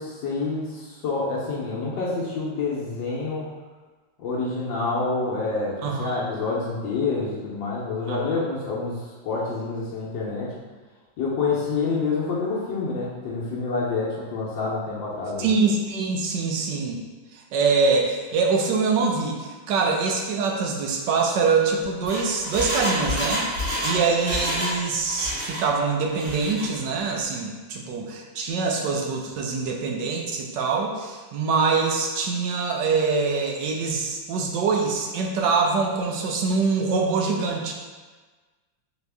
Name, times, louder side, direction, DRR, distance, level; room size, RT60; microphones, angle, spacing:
voice 1, 0.0-3.5 4.2-10.5 11.2-15.5 19.7-19.8, left 3 dB, 75° left, -6 dB, 1.4 m, -27 dB
voice 2, 5.8-6.2 8.1-8.2 15.4-17.0 17.3-23.5 23.8-37.7, right 4 dB, 70° right, 1 dB, 1.2 m, -24 dB
Engine, 21.8-24.8 25.0-25.7 26.1-26.7 27.0-27.1, equal, 50° right, 2.2 m, -28 dB
4.2 x 2.9 x 3.4 m, 1.3 s
omnidirectional pair, 2.1 m